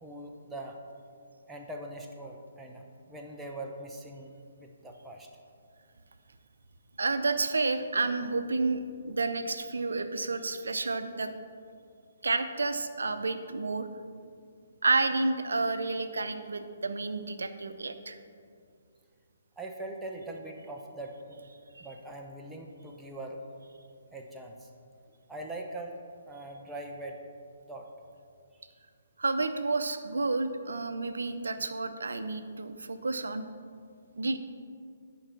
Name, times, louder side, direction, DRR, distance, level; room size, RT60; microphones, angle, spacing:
voice 1, 0.0-0.8 1.5-4.3 4.6-5.3 19.6-21.5 21.8-23.4 24.1-24.7 25.3-26.0 26.3-27.2 27.7-27.9, right 1 dB, 5° right, 0 dB, 0.8 m, -42 dB
voice 2, 7.0-11.3 12.2-13.9 14.8-18.2 29.2-33.4 34.2-34.4, right 3 dB, 80° right, 10 dB, 0.6 m, -30 dB
10.5 x 4.6 x 6.0 m, 2.3 s
figure-of-eight pair, 140°, 0 cm